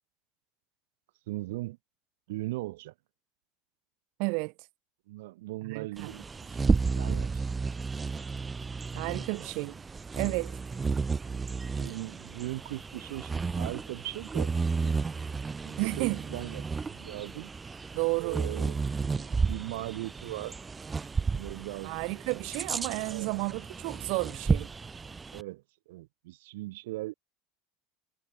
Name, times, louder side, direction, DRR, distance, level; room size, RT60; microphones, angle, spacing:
voice 1, 1.3-1.8 2.3-2.9 5.1-7.5 11.8-14.5 14.8-14.9 15.6-17.5 18.2-20.6 21.3-22.1 23.1-23.3 25.3-27.1, right 19 dB, 85° right, 7.9 m, -39 dB
voice 2, 4.2-4.5 5.6-6.1 8.9-9.8 10.2-10.6 15.8-16.2 17.9-18.4 21.8-24.7, right 34 dB, 65° right, 1.1 m, -32 dB
Bird vocalization bird call bird song, 6.0-25.4, right 4 dB, 15° right, 0.6 m, -32 dB
supercardioid pair, 135°, 0 cm